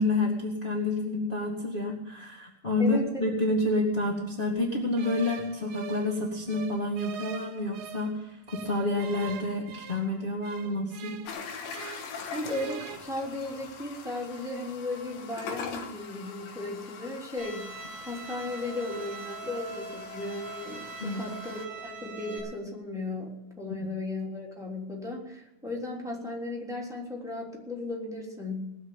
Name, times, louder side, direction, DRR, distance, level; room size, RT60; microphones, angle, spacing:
voice 1, 0.0-11.1 21.0-21.2 23.7-23.8, left 2 dB, 25° left, -1 dB, 1.1 m, -29 dB
voice 2, 2.8-3.2 12.3-17.7 18.0-28.6, left 2 dB, ahead, -2 dB, 3.0 m, -36 dB
sound 1, 5.0-8.1 8.5-12.2 12.4-13.0, right 8 dB, 70° right, 1.6 m, -43 dB
sound 2, 11.3-21.7, left 5 dB, 85° left, 3.3 m, -42 dB
Bowed string instrument, 17.4-22.4, right 3 dB, 20° right, 8.0 m, -42 dB
19.5 x 7.4 x 8.9 m, 0.90 s
omnidirectional pair, 4.0 m